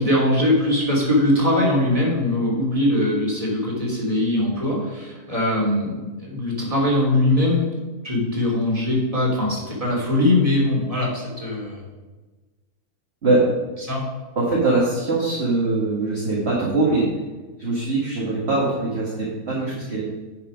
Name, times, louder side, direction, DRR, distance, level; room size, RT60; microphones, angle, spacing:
voice 1, 0.0-7.7 8.0-11.8 13.9-14.0, left 1 dB, 20° right, -4 dB, 3.0 m, -21 dB
voice 2, 14.4-17.1 17.6-20.0, right 2 dB, 40° right, -5 dB, 1.9 m, -22 dB
10.0 x 6.8 x 5.0 m, 1.2 s
omnidirectional pair, 1.8 m